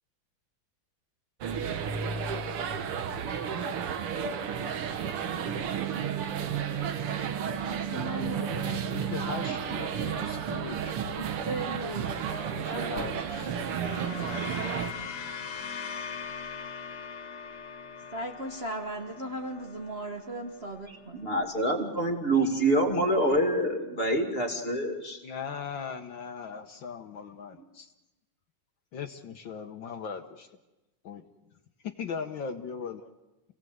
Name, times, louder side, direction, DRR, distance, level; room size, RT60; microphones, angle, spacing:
sound 1, 1.4-14.9, right 7 dB, 85° right, 2.1 m, -32 dB
voice 1, 7.7-8.9 10.4-10.5 11.0-13.5 13.8-15.1 18.1-21.2, right 1 dB, 35° right, 1 dB, 1.3 m, -38 dB
voice 2, 8.6-11.0 12.6-13.5 25.2-27.9 28.9-30.5 31.0-31.2 31.8-33.1, left 6 dB, 65° left, 6 dB, 1.7 m, -39 dB
sound 2, 13.2-21.7, left 6 dB, 85° left, 2.4 m, -41 dB
voice 3, 21.1-25.2, right 1 dB, 25° left, 4 dB, 2.6 m, -26 dB
29.0 x 17.5 x 7.9 m, 1.1 s
omnidirectional pair, 2.4 m